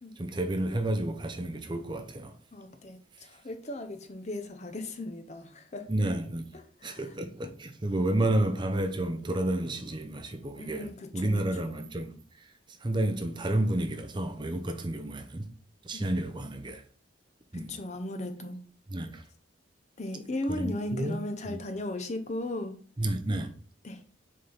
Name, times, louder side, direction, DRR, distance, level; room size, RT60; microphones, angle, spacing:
voice 1, 0.2-2.3 5.9-6.5 6.8-15.5 15.8-16.8 17.5-17.7 18.9-19.2 20.5-21.2 21.5-21.6 23.0-23.5, right 1 dB, 25° right, 0.6 m, -31 dB
voice 2, 2.5-5.9 6.5-7.1 10.6-11.8 15.9-16.2 17.5-18.6 20.0-22.7 23.8-24.0, left 1 dB, 35° left, 0.7 m, -37 dB
6.4 x 4.3 x 4.0 m
head